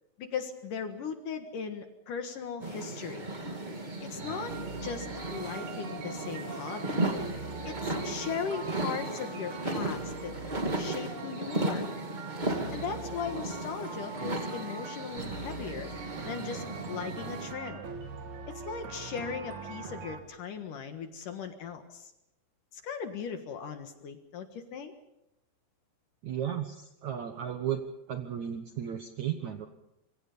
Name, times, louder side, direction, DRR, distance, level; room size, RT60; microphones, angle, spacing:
voice 1, 0.2-3.3 4.0-4.5 4.8-7.1 7.6-10.3 10.8-11.9 12.7-17.9 18.5-22.1 22.7-24.9, left 6 dB, 60° left, 7 dB, 2.7 m, -38 dB
sound 1, 2.6-17.5, right 2 dB, 30° right, 0.8 m, -35 dB
sound 2, 4.2-20.2, right 4 dB, 50° right, 3.0 m, -43 dB
voice 2, 26.2-27.8 28.1-29.7, right 9 dB, 65° right, 6 dB, 1.8 m, -34 dB
26.0 x 23.5 x 5.4 m, 0.86 s
omnidirectional pair, 5.0 m